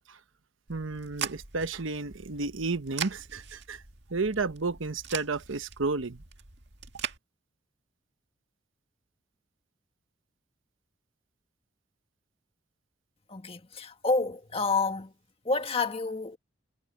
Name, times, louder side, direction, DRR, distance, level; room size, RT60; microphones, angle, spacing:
sound 1, 0.7-7.2, right 8 dB, 60° right, 2.0 m, -41 dB
voice 1, 0.7-3.8 4.1-6.2, right 3 dB, 75° right, 1.1 m, -32 dB
voice 2, 13.3-15.1 15.5-16.4, left 3 dB, 30° left, 1.8 m, -29 dB
head